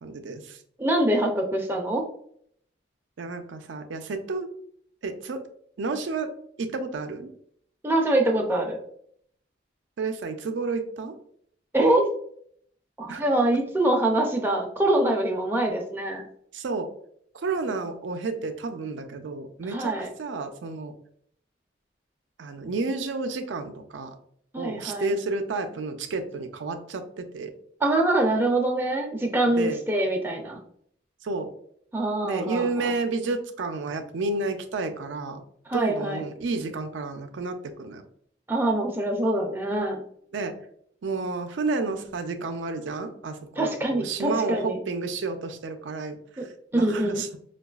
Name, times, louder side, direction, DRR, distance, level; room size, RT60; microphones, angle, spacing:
voice 1, 0.0-0.6 3.2-4.5 5.0-5.4 5.8-6.3 6.6-7.3 10.0-11.1 13.1-13.2 16.5-16.9 17.4-20.9 22.4-24.2 24.5-27.5 29.6-29.8 31.2-31.5 32.2-35.4 35.7-38.0 40.3-40.5 41.0-47.4, right 3 dB, 85° right, 6 dB, 0.4 m, -31 dB
voice 2, 0.8-2.0 7.8-8.8 11.7-12.1 13.0-16.2 19.7-20.1 24.5-25.1 27.8-30.6 31.9-32.9 35.7-36.2 38.5-40.0 43.6-44.8 46.7-47.2, right 1 dB, 10° right, 1 dB, 0.4 m, -24 dB
4.6 x 2.3 x 2.3 m, 0.65 s
head